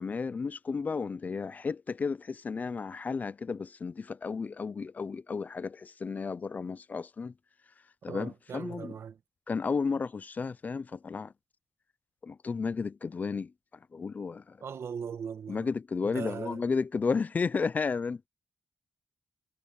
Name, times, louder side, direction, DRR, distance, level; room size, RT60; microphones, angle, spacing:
voice 1, 0.0-7.3 8.0-9.0 9.5-11.3 12.2-13.5 13.9-14.6 15.5-18.3, left 5 dB, 35° left, 0.4 m, -33 dB
voice 2, 8.1-9.2 14.6-15.7 16.0-16.6, right 7 dB, 70° right, 1.3 m, -39 dB
wide cardioid pair, 165°, 5 cm